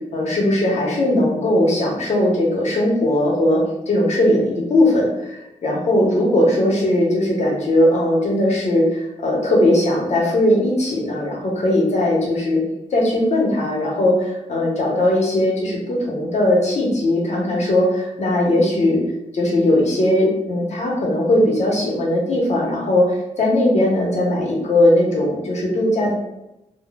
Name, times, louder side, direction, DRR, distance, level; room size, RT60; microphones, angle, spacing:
voice 1, 0.1-12.6 12.9-19.0 19.3-26.1, left 1 dB, 55° left, -2 dB, 0.9 m, -19 dB
3.8 x 2.2 x 2.2 m, 0.88 s
wide cardioid pair, 180°, 14 cm